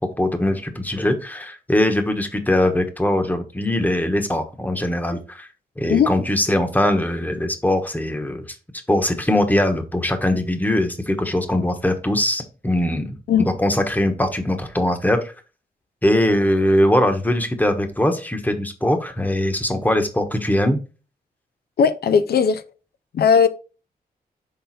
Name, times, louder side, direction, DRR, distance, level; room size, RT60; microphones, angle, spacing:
voice 1, 0.2-5.5 5.8-8.6 8.9-15.2 16.0-20.8, left 1 dB, 10° left, 1.2 m, -21 dB
voice 2, 21.8-22.6 23.1-23.5, left 6 dB, 75° left, 0.6 m, -17 dB
5.9 x 3.9 x 4.1 m
cardioid pair, 75°, 16 cm